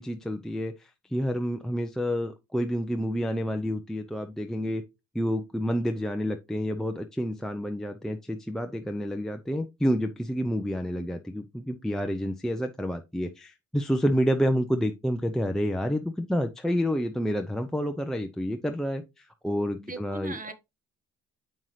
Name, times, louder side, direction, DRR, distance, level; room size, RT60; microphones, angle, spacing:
voice 1, 0.0-4.8 5.1-20.4, equal, ahead, 0.6 m, -29 dB
voice 2, 19.8-20.5, right 3 dB, 25° right, 1.4 m, -39 dB
7.6 x 5.3 x 3.2 m
cardioid pair, 90°, 30 cm